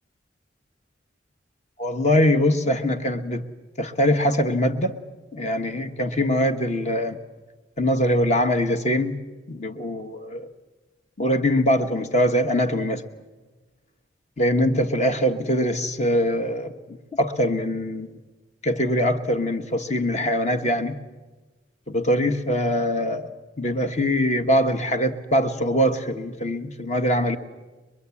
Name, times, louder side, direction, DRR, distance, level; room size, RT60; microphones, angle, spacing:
voice 1, 1.8-3.5 3.8-5.0 5.3-7.2 7.8-9.2 9.5-10.5 11.2-13.0 14.4-18.1 18.6-20.9 21.9-27.4, equal, 40° left, 7 dB, 1.4 m, -23 dB
23.0 x 23.0 x 8.4 m, 1.2 s
head